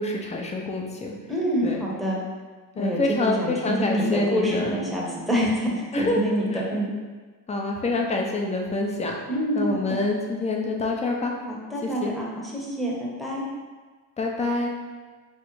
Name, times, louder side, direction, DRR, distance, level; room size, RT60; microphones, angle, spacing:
voice 1, 0.0-1.1 1.6-1.8 2.7-4.7 5.9-6.2 6.5-6.6 7.5-9.1 9.5-11.3 11.8-12.1 14.2-14.7, left 2 dB, 15° left, 0 dB, 0.5 m, -26 dB
voice 2, 1.3-2.2 2.7-5.7 6.0-6.4 6.7-6.9 9.3-10.0 11.5-13.5, equal, ahead, -5 dB, 0.8 m, -27 dB
4.8 x 2.0 x 3.0 m, 1.4 s
supercardioid pair, 80°, 43 cm